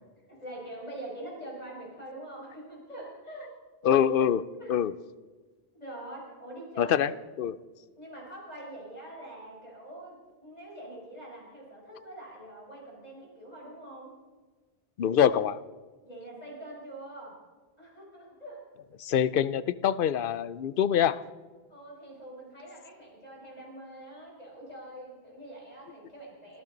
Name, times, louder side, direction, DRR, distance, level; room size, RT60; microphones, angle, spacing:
voice 1, 0.3-3.5 4.5-4.7 5.7-7.0 8.0-14.1 16.0-17.3 17.8-18.6 21.7-26.6, right 1 dB, 40° left, -3 dB, 6.1 m, -44 dB
voice 2, 3.8-4.9 6.8-7.1 7.4-7.6 15.0-15.6 19.0-21.2, left 9 dB, 65° left, 16 dB, 0.8 m, -25 dB
25.0 x 14.0 x 3.9 m, 1.4 s
omnidirectional pair, 1.0 m